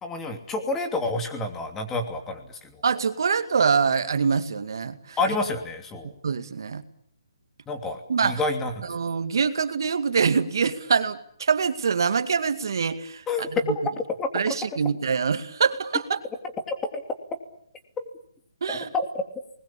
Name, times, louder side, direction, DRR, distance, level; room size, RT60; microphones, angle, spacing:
voice 1, 0.0-2.8 5.2-6.1 7.7-8.8 13.3-13.5 14.2-14.5 16.7-17.0 18.0-18.1 18.7-19.2, left 2 dB, 10° left, 5 dB, 2.9 m, -29 dB
voice 2, 2.8-5.2 6.2-6.8 8.1-8.4 8.8-13.2 13.5-13.6 14.3-16.2 18.6-18.9, right 6 dB, 65° right, 10 dB, 2.2 m, -24 dB
27.5 x 21.0 x 8.7 m, 0.65 s
hypercardioid pair, 155°, 2 cm